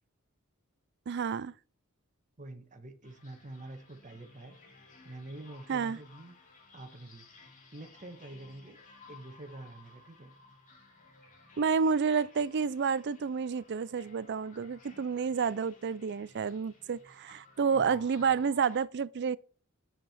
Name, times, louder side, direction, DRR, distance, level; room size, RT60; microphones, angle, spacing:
voice 1, 1.1-1.5 5.7-6.0 11.6-19.4, right 6 dB, 55° right, 0.4 m, -30 dB
voice 2, 2.4-4.6 5.0-6.3 6.7-7.3 7.7-8.8 9.1-10.3 17.7-18.1, right 2 dB, 35° right, 1.4 m, -47 dB
sound 1, 3.0-18.8, left 4 dB, 40° left, 2.6 m, -57 dB
8.9 x 7.6 x 4.3 m
head